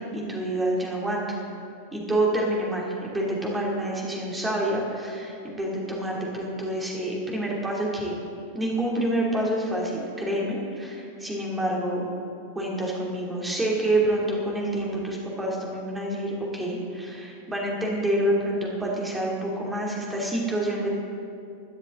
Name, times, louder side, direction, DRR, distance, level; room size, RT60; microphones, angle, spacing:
voice 1, 0.0-1.4 1.9-8.1 8.5-12.0 12.5-20.9, right 1 dB, 10° right, -3 dB, 2.6 m, -27 dB
21.5 x 7.3 x 3.8 m, 2.5 s
figure-of-eight pair, 90°, 0 cm